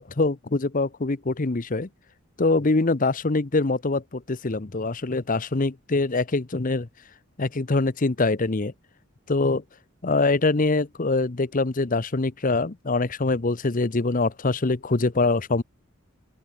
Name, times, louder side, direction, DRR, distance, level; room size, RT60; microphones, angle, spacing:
voice 1, 0.0-1.9 2.4-6.9 7.4-8.7 9.3-9.6 10.0-15.6, left 3 dB, 40° left, 0.8 m, -24 dB
open air
head